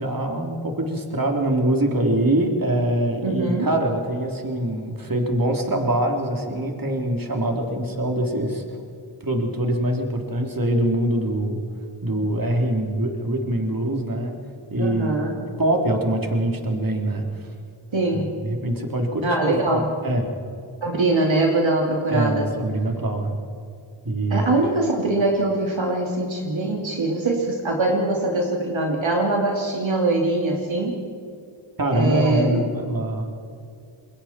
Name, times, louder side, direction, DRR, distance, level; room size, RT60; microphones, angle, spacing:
voice 1, 0.0-8.6 9.2-11.6 12.0-14.4 14.7-15.2 15.6-17.4 18.1-20.3 22.1-23.3 24.0-24.5 31.8-33.3, right 1 dB, 45° right, 2 dB, 3.4 m, -24 dB
voice 2, 3.2-3.7 14.8-15.4 17.9-18.4 19.2-19.9 20.8-22.5 24.3-31.0 31.9-32.6, right 2 dB, 65° right, 0 dB, 2.7 m, -22 dB
28.0 x 21.5 x 4.4 m, 2.4 s
cardioid pair, 45°, 49 cm